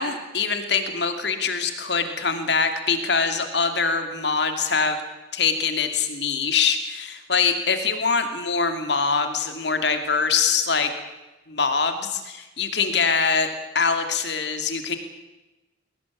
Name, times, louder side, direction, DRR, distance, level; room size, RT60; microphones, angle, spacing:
voice 1, 0.0-5.0 5.3-10.9 11.5-12.1 12.6-13.5 13.7-15.0, left 5 dB, 65° left, 7 dB, 2.7 m, -23 dB
21.5 x 18.5 x 8.6 m, 1.1 s
head